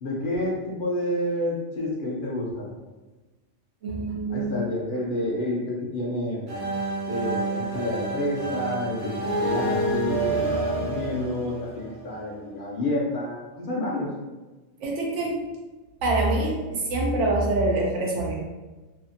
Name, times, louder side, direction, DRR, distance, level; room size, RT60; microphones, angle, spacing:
voice 1, 0.0-2.7 4.3-6.4 7.1-14.1, left 1 dB, 55° left, -4 dB, 0.7 m, -29 dB
voice 2, 3.8-4.6 14.8-15.4 16.0-18.5, right 2 dB, 85° right, -2 dB, 1.0 m, -25 dB
sound 1, 6.5-12.2, right 2 dB, 50° right, 0.7 m, -28 dB
2.8 x 2.4 x 2.5 m, 1.2 s
omnidirectional pair, 1.2 m